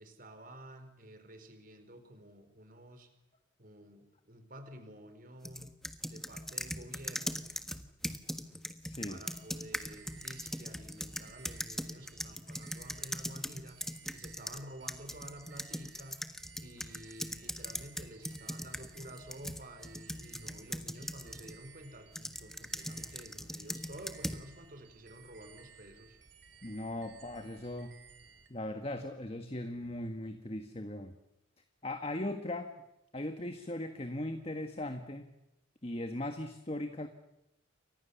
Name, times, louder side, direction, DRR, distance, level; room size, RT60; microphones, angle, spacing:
voice 1, 0.0-3.1 3.6-7.5 9.1-13.8 14.1-16.3 16.6-26.2, right 1 dB, 45° right, 8 dB, 4.4 m, -51 dB
sound 1, 5.4-14.6 14.9-21.6 22.2-24.4, left 1 dB, ahead, 1.4 m, -40 dB
voice 2, 8.8-9.2 26.6-27.9 28.5-31.1 31.8-32.7 33.1-35.3 35.8-37.1, left 1 dB, 30° left, 7 dB, 1.6 m, -38 dB
sound 2, 9.2-28.5, right 6 dB, 60° right, 3.7 m, -58 dB
29.5 x 24.5 x 7.1 m, 0.88 s
head